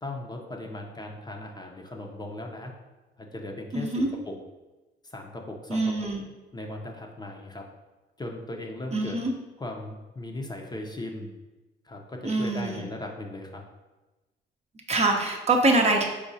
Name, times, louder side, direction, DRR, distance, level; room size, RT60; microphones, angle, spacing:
voice 1, 0.0-2.7 3.2-4.4 5.0-5.9 6.5-7.7 8.2-9.2 9.6-11.3 11.8-13.6, left 1 dB, 20° left, 1 dB, 0.6 m, -38 dB
voice 2, 3.7-4.1 5.7-6.2 8.9-9.3 12.2-12.8 14.9-16.0, right 2 dB, 35° right, 2 dB, 0.7 m, -24 dB
4.9 x 2.3 x 4.1 m, 1.1 s
cardioid pair, 90°, 20 cm